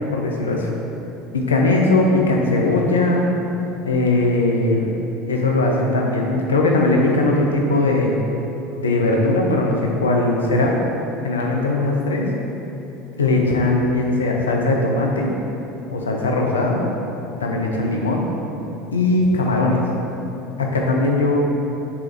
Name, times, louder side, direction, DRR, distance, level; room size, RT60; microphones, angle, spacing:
voice 1, 0.1-0.7 1.3-3.2 3.8-4.9 5.3-8.2 8.8-10.8 11.2-12.2 13.2-15.3 15.9-16.8 17.4-18.3 18.9-19.8 20.6-21.4, left 2 dB, 75° left, 0 dB, 0.4 m, -19 dB
3.4 x 3.0 x 3.0 m, 3.0 s
figure-of-eight pair, 70°, 0 cm